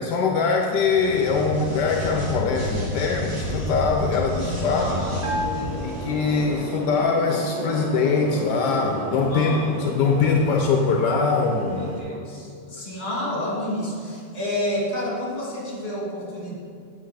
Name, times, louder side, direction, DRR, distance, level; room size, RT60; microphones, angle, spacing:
voice 1, 0.0-5.0 5.8-9.5 9.8-11.8, left 4 dB, 80° left, 2 dB, 1.2 m, -22 dB
sound 1, 0.8-6.5, left 1 dB, 90° right, 2.8 m, -30 dB
voice 2, 4.7-5.2 5.5-6.3 9.3-9.7 11.8-16.6, left 1 dB, 35° left, -6 dB, 2.3 m, -30 dB
sound 2, 4.8-12.0, right 1 dB, 65° right, 1.5 m, -34 dB
Bell, 5.2-6.8, equal, 15° right, 0.7 m, -32 dB
8.0 x 7.1 x 3.3 m, 2.2 s
omnidirectional pair, 1.8 m